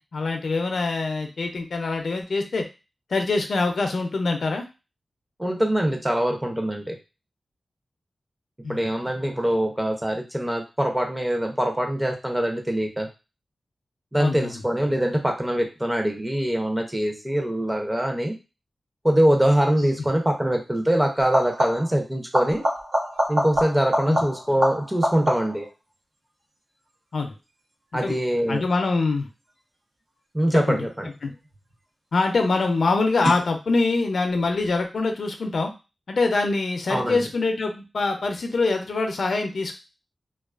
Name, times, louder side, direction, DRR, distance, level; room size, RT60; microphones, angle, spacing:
voice 1, 0.0-2.6 3.1-4.7 8.6-8.8 14.2-14.6 24.1-24.2 27.1-27.3 28.0-28.1 28.5-29.3 30.5-30.8 31.2-31.3 32.1-35.7 36.1-39.7, left 3 dB, 75° left, 4 dB, 0.4 m, -24 dB
voice 2, 5.4-7.0 8.7-13.1 14.1-18.3 19.0-22.6 23.3-25.7 27.9-28.6 30.3-31.1 36.9-37.3, right 1 dB, 10° right, 3 dB, 0.5 m, -23 dB
sound 1, 19.8-20.0 21.2-22.0 22.3-25.7 31.1-31.7 33.2-33.3, equal, 90° right, 0.9 m, -26 dB
2.4 x 2.3 x 2.3 m, 0.29 s
wide cardioid pair, 100°, 0 cm